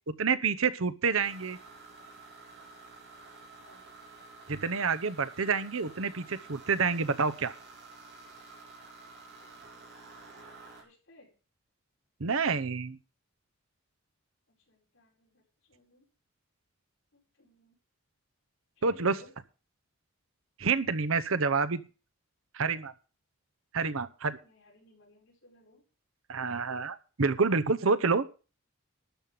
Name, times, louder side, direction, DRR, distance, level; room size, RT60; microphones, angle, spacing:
voice 1, 0.2-1.6 4.5-7.5 12.2-13.0 18.8-19.1 20.6-21.8 22.5-22.9 23.7-24.4 26.3-28.2, right 5 dB, 70° right, 12 dB, 0.8 m, -28 dB
sound 1, 1.2-10.8, right 3 dB, 50° right, 3.5 m, -51 dB
voice 2, 9.4-10.4 10.8-11.3 14.7-15.4 15.7-16.0 17.1-17.8 18.8-19.3 24.4-25.8, left 1 dB, 60° left, 0 dB, 4.4 m, -59 dB
12.5 x 5.6 x 7.5 m, 0.35 s
head